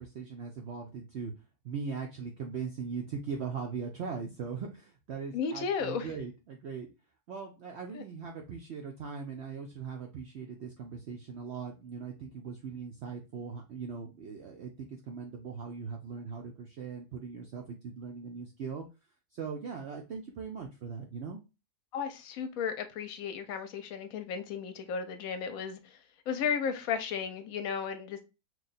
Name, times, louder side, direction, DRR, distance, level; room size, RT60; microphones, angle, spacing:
voice 1, 0.0-1.3 1.6-6.9 7.3-18.9 19.3-21.4, right 5 dB, 75° right, 0.6 m, -40 dB
voice 2, 5.3-6.1 7.9-8.0 21.9-26.0 26.3-28.2, left 6 dB, 70° left, 1.0 m, -34 dB
3.1 x 2.3 x 3.9 m
omnidirectional pair, 1.6 m